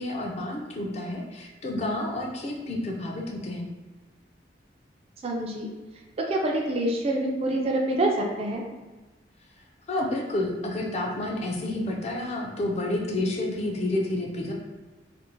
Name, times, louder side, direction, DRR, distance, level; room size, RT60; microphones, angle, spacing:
voice 1, 0.0-3.7 9.9-14.5, left 1 dB, 35° left, 0 dB, 0.4 m, -30 dB
voice 2, 5.2-5.7 6.2-8.6, right 1 dB, 35° right, 0 dB, 0.3 m, -26 dB
2.5 x 2.0 x 2.9 m, 1.2 s
head